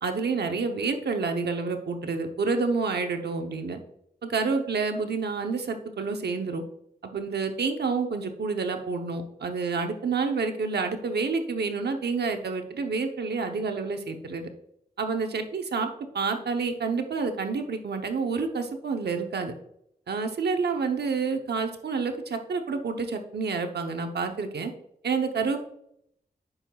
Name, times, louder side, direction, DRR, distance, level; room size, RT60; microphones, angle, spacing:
voice 1, 0.0-3.8 4.2-6.6 7.0-14.5 15.0-15.9 16.1-19.5 20.1-24.7 25.0-25.6, right 4 dB, 85° right, 5 dB, 0.9 m, -28 dB
8.8 x 6.4 x 2.4 m, 0.73 s
cardioid pair, 60°, 17 cm